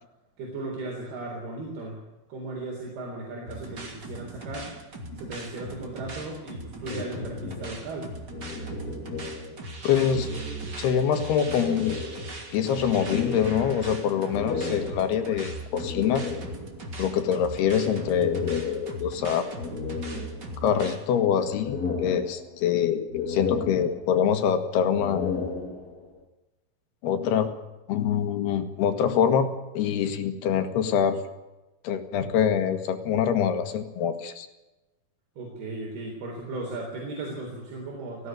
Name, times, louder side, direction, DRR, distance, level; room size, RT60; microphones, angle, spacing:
voice 1, 0.4-2.0 2.3-4.7 5.2-8.2 35.4-38.3, right 2 dB, 80° right, -1 dB, 5.8 m, -36 dB
sound 1, 3.5-21.0, right 2 dB, 30° right, 2.8 m, -40 dB
sound 2, 6.8-9.7 9.9-11.0 11.4-16.9 17.8-19.1 19.5-20.9 21.3-22.8 23.1-24.4 24.8-26.2, left 4 dB, 25° left, 2.5 m, -34 dB
voice 2, 9.8-10.3 10.8-11.9 12.5-16.2 17.0-19.5 20.6-25.3 27.0-27.5 27.9-29.5 29.8-31.2 31.8-34.5, left 8 dB, 90° left, 8 dB, 3.7 m, -25 dB
18.5 x 16.0 x 9.2 m, 1.0 s
omnidirectional pair, 4.5 m